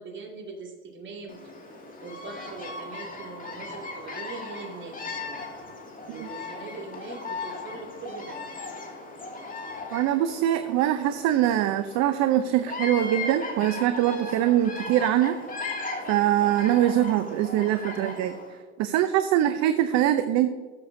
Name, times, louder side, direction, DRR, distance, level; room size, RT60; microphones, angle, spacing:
voice 1, 0.0-1.4 2.0-5.4 6.1-8.4, right 3 dB, 35° right, 0 dB, 2.6 m, -41 dB
Bird vocalization bird call bird song, 1.3-18.5, left 3 dB, 25° left, 2.3 m, -37 dB
voice 2, 9.9-15.4 16.1-18.4 18.8-20.5, right 12 dB, 50° right, 9 dB, 0.7 m, -23 dB
13.5 x 6.9 x 2.7 m, 1.5 s
hypercardioid pair, 90°, 35 cm